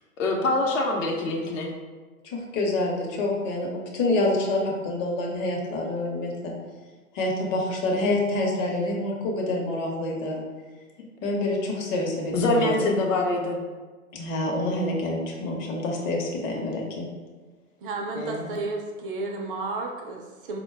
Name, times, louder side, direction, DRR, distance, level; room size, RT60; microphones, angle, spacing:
voice 1, 0.2-1.7 7.5-7.7 12.3-13.6 18.2-18.5, left 2 dB, 65° left, 1 dB, 0.8 m, -25 dB
voice 2, 2.2-6.5 7.1-10.4 11.2-12.9 14.1-17.0, left 2 dB, 30° left, -1 dB, 0.7 m, -27 dB
voice 3, 17.8-20.6, right 3 dB, 40° right, 2 dB, 0.4 m, -32 dB
4.2 x 2.2 x 3.3 m, 1.3 s
hypercardioid pair, 110°, 42 cm